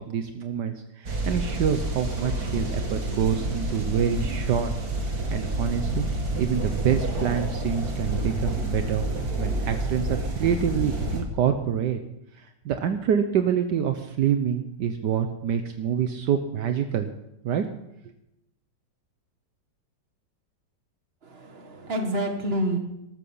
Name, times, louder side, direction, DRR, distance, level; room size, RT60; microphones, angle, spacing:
voice 1, 0.0-4.7 5.0-6.1 6.4-9.1 9.4-12.0 12.4-17.1 17.4-17.6, right 8 dB, 70° right, 7 dB, 1.4 m, -26 dB
sound 1, 1.1-11.2, right 1 dB, 55° right, 2.7 m, -29 dB
voice 2, 21.2-22.8, right 1 dB, 35° right, 4 dB, 1.9 m, -28 dB
13.5 x 13.0 x 5.6 m, 0.85 s
omnidirectional pair, 2.0 m